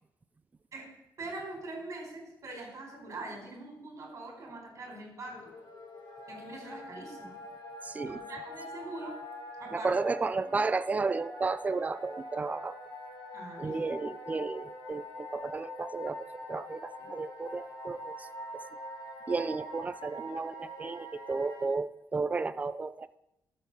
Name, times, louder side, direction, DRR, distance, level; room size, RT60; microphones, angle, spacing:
voice 1, 1.2-5.5 6.3-7.4 8.0-9.2 9.6-9.9 10.4-10.6 13.3-13.9, right 2 dB, 40° right, -1 dB, 4.4 m, -43 dB
sound 1, 5.1-21.6, left 1 dB, 60° left, 3.5 m, -44 dB
voice 2, 7.8-8.2 9.7-12.8 13.6-18.3 19.3-23.1, right 4 dB, 20° right, 13 dB, 0.4 m, -33 dB
12.0 x 7.3 x 4.1 m, 0.84 s
cardioid pair, 130°, 8 cm